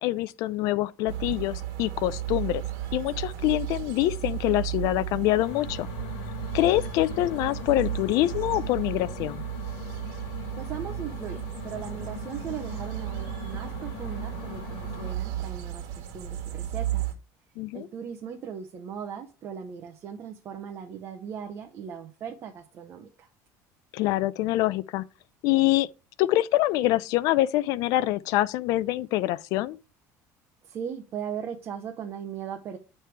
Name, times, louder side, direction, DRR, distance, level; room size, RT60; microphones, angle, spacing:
voice 1, 0.0-2.6 2.9-5.9 6.5-9.4 17.6-17.9 23.9-25.0 25.4-25.9 26.2-29.8, left 16 dB, 60° left, 0.4 m, -25 dB
sound 1, 1.1-17.1, right 12 dB, 70° right, 1.5 m, -34 dB
sound 2, 5.4-15.1, left 10 dB, 90° left, 0.9 m, -41 dB
voice 2, 10.6-17.0 17.7-23.3 30.7-32.8, right 8 dB, 35° right, 0.7 m, -38 dB
9.3 x 3.3 x 4.5 m
cardioid pair, 170°, 7 cm